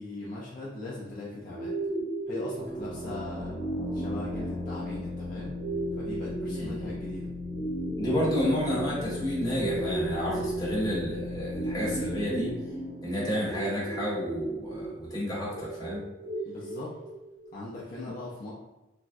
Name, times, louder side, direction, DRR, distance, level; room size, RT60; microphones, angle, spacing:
voice 1, 0.0-1.7 2.3-3.6 3.9-5.5 6.0-7.3 16.4-17.0 17.5-18.5, left 2 dB, 45° left, -5 dB, 0.4 m, -39 dB
sound 1, 1.5-17.5, right 2 dB, 70° right, 1.3 m, -36 dB
sound 2, 2.6-14.1, left 2 dB, 30° right, 0.4 m, -38 dB
voice 2, 6.5-6.9 8.0-12.5 13.0-16.0, equal, 20° left, -7 dB, 1.0 m, -30 dB
3.4 x 2.1 x 2.5 m, 1.0 s
head